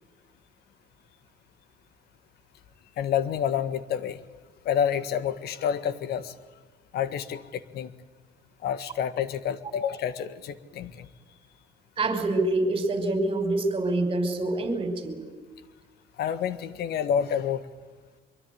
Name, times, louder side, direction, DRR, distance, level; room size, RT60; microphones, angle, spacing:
voice 1, 3.0-4.2 4.6-6.3 6.9-7.9 8.6-11.1 16.2-17.7, left 8 dB, 70° left, 13 dB, 1.7 m, -28 dB
voice 2, 12.0-15.2, right 2 dB, 30° right, 6 dB, 5.6 m, -26 dB
24.5 x 24.0 x 9.8 m, 1.3 s
cardioid pair, 110°, 17 cm